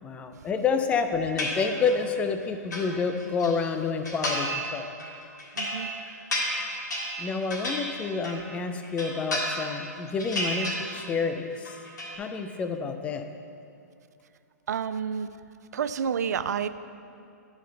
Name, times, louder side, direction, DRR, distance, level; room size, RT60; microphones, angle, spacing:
voice 1, 0.0-4.9 7.2-11.8 12.2-13.3, left 5 dB, 15° left, 7 dB, 0.4 m, -29 dB
sound 1, 1.4-2.1 2.4-3.5 4.0-4.7 5.0-8.5 8.8-9.9 10.2-11.3 11.5-12.2, equal, 85° left, 1.8 m, -32 dB
voice 2, 5.6-5.9 14.7-15.3 15.7-16.7, right 7 dB, 75° right, 13 dB, 0.4 m, -29 dB
11.0 x 5.1 x 3.9 m, 2.5 s
hypercardioid pair, 135°, 9 cm